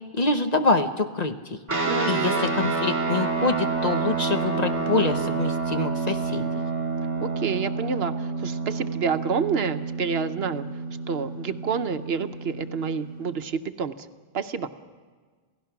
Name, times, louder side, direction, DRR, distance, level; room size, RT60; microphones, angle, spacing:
voice 1, 0.1-1.6 2.1-6.5, left 3 dB, 40° left, 7 dB, 0.9 m, -25 dB
sound 1, 1.7-13.4, right 4 dB, 15° right, 2.2 m, -28 dB
voice 2, 1.8-2.5 7.2-10.6 11.1-14.1 14.3-14.7, right 6 dB, 65° right, 10 dB, 1.0 m, -28 dB
28.0 x 16.5 x 5.9 m, 1.5 s
omnidirectional pair, 1.1 m